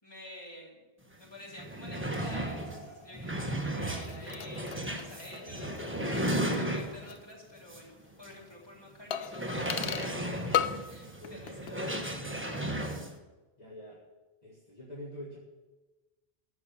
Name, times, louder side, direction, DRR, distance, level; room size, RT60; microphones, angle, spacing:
voice 1, 0.0-10.6 10.9-12.6, left 1 dB, 25° left, -4 dB, 3.5 m, -50 dB
sound 1, 1.1-1.2 1.5-7.2 7.7-7.8 8.2-8.3 9.3-13.1, right 1 dB, 10° right, 1.3 m, -35 dB
sound 2, 2.1-3.8, right 1 dB, 60° right, 4.7 m, -48 dB
sound 3, 3.9-7.3 7.6-7.7 9.1-10.2 10.5-11.0 11.2-11.8 12.1-12.2, left 10 dB, 75° left, 0.8 m, -37 dB
voice 2, 11.2-11.8 13.6-14.0 14.4-15.4, equal, 40° left, -4 dB, 2.1 m, -46 dB
14.0 x 5.9 x 8.7 m, 1.2 s
omnidirectional pair, 1.0 m